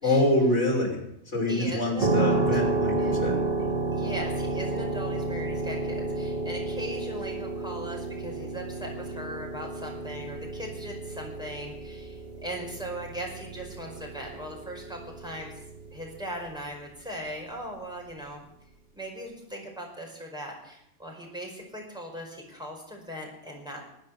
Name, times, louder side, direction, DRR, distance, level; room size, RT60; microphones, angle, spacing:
voice 1, 0.0-1.0 1.3-3.4, left 1 dB, 70° left, -2 dB, 5.9 m, -25 dB
voice 2, 1.5-2.6 3.0-3.2 3.9-15.5 15.9-18.5 18.9-23.8, equal, 5° right, -1 dB, 5.1 m, -39 dB
sound 1, 2.0-16.7, right 2 dB, 55° right, 1.5 m, -31 dB
21.0 x 9.5 x 7.1 m, 0.79 s
omnidirectional pair, 1.3 m